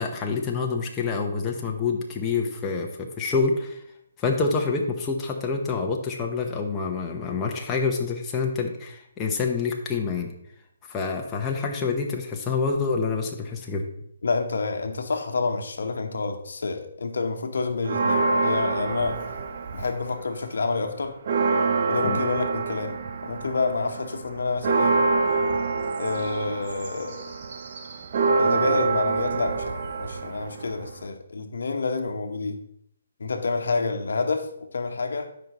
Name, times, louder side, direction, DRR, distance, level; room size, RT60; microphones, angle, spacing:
voice 1, 0.0-3.8 4.2-10.3 10.9-13.8 22.0-22.2, left 4 dB, 15° left, 0 dB, 1.0 m, -27 dB
voice 2, 14.2-19.2 19.7-21.2 21.9-25.0 26.0-27.3 28.4-32.6 33.2-35.4, left 4 dB, 70° left, 6 dB, 1.0 m, -28 dB
Church bell, 17.8-20.2 20.6-20.7 21.0-31.1, right 3 dB, 50° right, 0.9 m, -26 dB
12.5 x 5.3 x 3.0 m, 0.75 s
hypercardioid pair, 150°, 0 cm